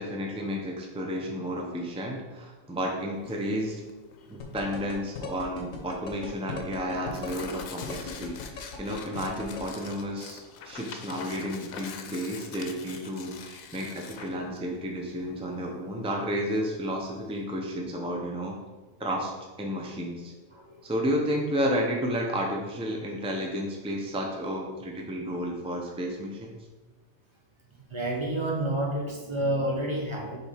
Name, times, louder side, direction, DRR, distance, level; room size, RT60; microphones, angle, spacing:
voice 1, 0.0-3.8 4.3-10.4 10.6-18.6 19.0-19.3 19.6-20.3 20.8-26.6, equal, 10° right, 0 dB, 0.3 m, -32 dB
Tearing, 3.2-17.4, left 6 dB, 85° left, 1.1 m, -45 dB
voice 2, 4.1-4.6 20.5-20.9 27.7-30.4, right 1 dB, 25° right, 0 dB, 0.8 m, -30 dB
sound 1, 4.4-9.6, left 6 dB, 70° left, 1.4 m, -37 dB
6.7 x 3.3 x 4.9 m, 1.2 s
omnidirectional pair, 1.4 m